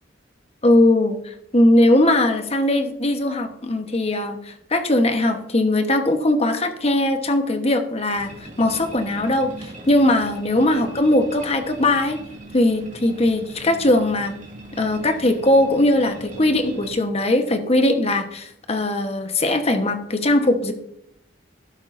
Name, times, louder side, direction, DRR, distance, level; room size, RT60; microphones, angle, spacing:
voice 1, 0.6-8.3 8.6-12.2 12.5-14.3 14.8-20.7, left 1 dB, 35° left, 7 dB, 1.1 m, -20 dB
sound 1, 8.1-17.0, right 1 dB, 40° right, 2.6 m, -40 dB
12.5 x 10.0 x 2.6 m, 0.76 s
head